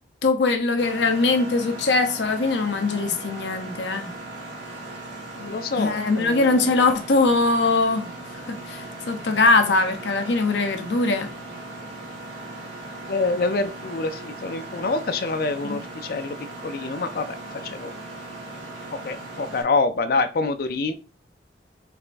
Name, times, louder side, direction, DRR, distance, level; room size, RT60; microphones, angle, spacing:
voice 1, 0.2-4.1 5.8-11.3 15.6-15.8, left 3 dB, 85° left, 0.7 m, -22 dB
Mechanisms, 0.8-19.6, right 2 dB, 85° right, 1.6 m, -38 dB
voice 2, 5.3-6.6 13.1-16.4 16.6-17.4 17.6-17.9 19.0-20.9, left 3 dB, 55° left, 0.4 m, -26 dB
4.7 x 3.4 x 2.5 m
head